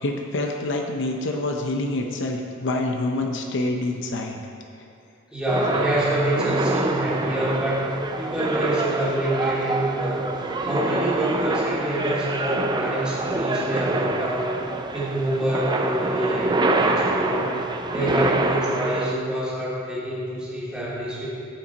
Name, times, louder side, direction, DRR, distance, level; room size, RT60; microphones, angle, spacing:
voice 1, 0.0-4.4, left 2 dB, 65° left, 2 dB, 0.7 m, -26 dB
voice 2, 5.3-14.6 14.9-17.6 17.8-21.3, right 1 dB, 5° right, -9 dB, 2.5 m, -26 dB
sound 1, 5.5-19.1, right 2 dB, 20° right, 0.4 m, -26 dB
14.0 x 5.8 x 4.0 m, 2.5 s
head